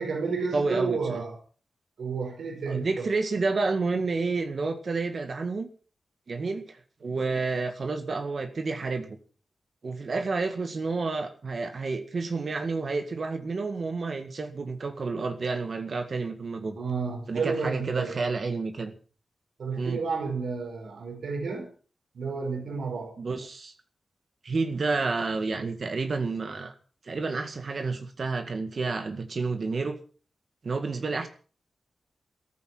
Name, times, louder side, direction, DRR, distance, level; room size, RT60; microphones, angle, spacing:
voice 1, 0.0-1.4 2.0-3.1 7.0-7.4 10.1-10.2 16.7-18.2 19.6-21.7 22.1-23.2, right 4 dB, 85° right, 4 dB, 5.0 m, -31 dB
voice 2, 0.5-1.2 2.7-5.7 6.3-9.1 9.8-16.8 17.3-18.9 19.8-20.0 23.2-23.7 24.4-26.8 27.0-30.0 30.6-31.3, right 3 dB, 55° right, 6 dB, 1.9 m, -30 dB
14.0 x 14.0 x 6.2 m, 0.39 s
wide cardioid pair, 95°, 0 cm